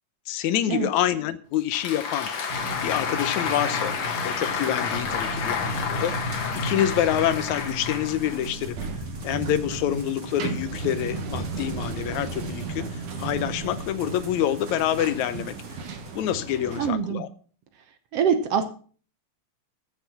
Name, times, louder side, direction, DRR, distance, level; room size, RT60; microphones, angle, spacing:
voice 1, 0.3-2.3 2.8-3.9 4.2-8.8 9.2-15.5 16.1-17.3, left 11 dB, 75° left, 13 dB, 2.1 m, -27 dB
Applause, 1.5-8.7, left 6 dB, 60° left, 2.6 m, -30 dB
sound 1, 2.5-16.6, right 1 dB, 30° right, 2.4 m, -38 dB
sound 2, 4.9-16.9, right 4 dB, 90° right, 3.0 m, -36 dB
voice 2, 16.8-17.2 18.1-18.6, right 7 dB, 65° right, 9 dB, 1.7 m, -24 dB
13.5 x 6.7 x 5.8 m, 0.42 s
omnidirectional pair, 3.4 m